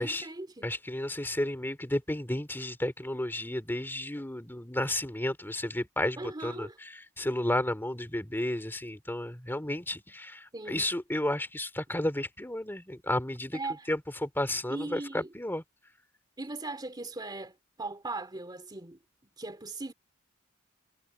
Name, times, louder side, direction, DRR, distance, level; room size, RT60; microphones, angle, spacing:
voice 1, 0.0-0.7 6.2-6.8 10.5-10.9 13.5-13.9 14.7-15.3 16.4-19.0 19.4-19.9, right 2 dB, 20° right, 2.5 m, -39 dB
voice 2, 0.6-13.6 13.9-15.6, left 1 dB, 10° left, 2.8 m, -32 dB
head